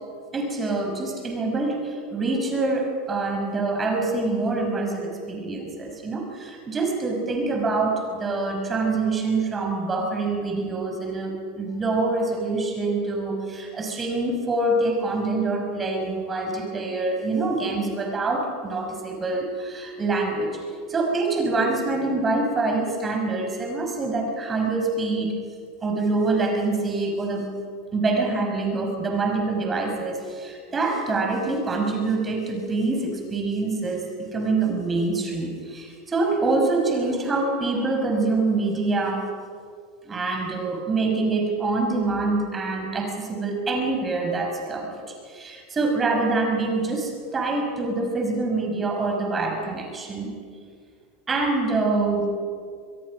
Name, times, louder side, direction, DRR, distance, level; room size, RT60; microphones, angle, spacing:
voice 1, 0.3-20.5 20.9-25.3 25.8-27.5 27.9-34.0 34.3-39.3 40.1-45.0 45.3-50.3 51.3-52.3, right 3 dB, 25° right, 2 dB, 5.4 m, -25 dB
24.5 x 22.0 x 6.2 m, 2.2 s
hypercardioid pair, 90°, 0 cm